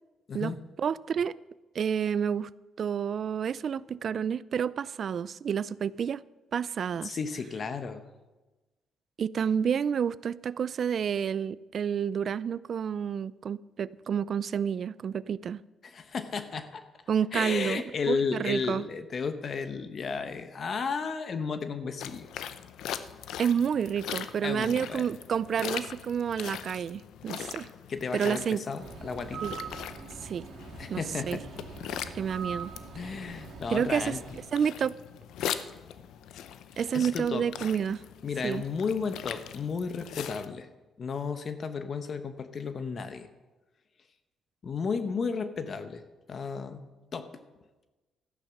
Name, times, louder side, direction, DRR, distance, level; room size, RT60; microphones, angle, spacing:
voice 1, 0.8-1.4 1.7-2.5 2.8-6.2 6.5-7.1 9.2-15.6 17.1-18.8 23.4-27.7 28.1-28.6 29.4-29.6 30.2-30.4 30.9-31.4 32.1-32.7 33.7-34.1 34.5-34.9 36.8-38.0 38.4-38.6, right 7 dB, 55° right, 0.4 m, -29 dB
voice 2, 7.0-8.0 15.8-16.8 17.3-22.3 24.4-25.1 27.9-29.5 30.8-31.4 32.9-34.2 36.9-37.5 38.2-40.7 41.0-43.3 44.6-46.0 46.3-46.9 47.1-47.3, left 5 dB, 50° left, 1.0 m, -33 dB
sound 1, 22.0-40.5, left 10 dB, 80° left, 0.6 m, -41 dB
Bird, 28.8-34.6, right 6 dB, 70° right, 2.4 m, -43 dB
13.5 x 10.0 x 6.0 m
cardioid pair, 90°, 0 cm